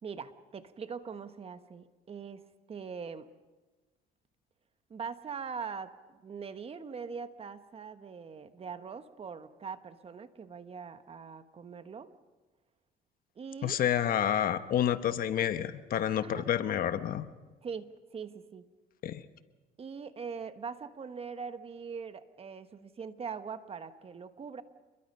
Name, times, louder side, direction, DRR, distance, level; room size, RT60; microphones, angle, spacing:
voice 1, 0.0-3.3 4.9-12.1 13.3-13.8 16.2-16.5 17.6-18.6 19.8-24.6, right 6 dB, 35° right, 10 dB, 1.3 m, -42 dB
voice 2, 13.6-17.3 19.0-19.2, left 10 dB, 60° left, 11 dB, 1.2 m, -29 dB
28.0 x 22.0 x 5.6 m, 1.2 s
cardioid pair, 110°, 17 cm